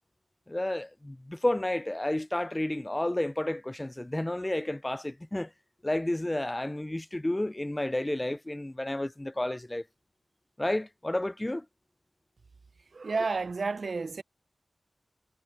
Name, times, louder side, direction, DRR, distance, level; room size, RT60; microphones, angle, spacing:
voice 1, 0.5-5.5 5.8-9.8 10.6-11.7 13.2-13.3, left 1 dB, 15° left, 0.3 m, -31 dB
voice 2, 12.9-14.2, right 4 dB, 65° right, 0.4 m, -31 dB
wide cardioid pair, 95°, 0 cm